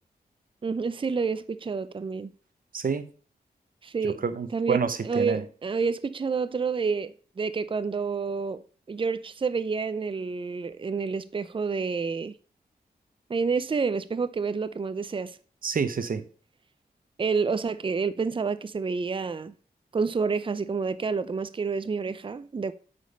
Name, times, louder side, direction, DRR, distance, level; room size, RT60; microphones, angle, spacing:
voice 1, 0.6-2.3 3.8-4.2 4.5-8.6 8.9-12.3 13.3-15.4 17.2-19.5 19.9-22.7, right 5 dB, 30° right, 0.5 m, -29 dB
voice 2, 2.7-3.1 4.0-5.4 15.6-16.2, right 5 dB, 60° right, 0.9 m, -28 dB
8.2 x 5.2 x 5.2 m
cardioid pair, 75°, 17 cm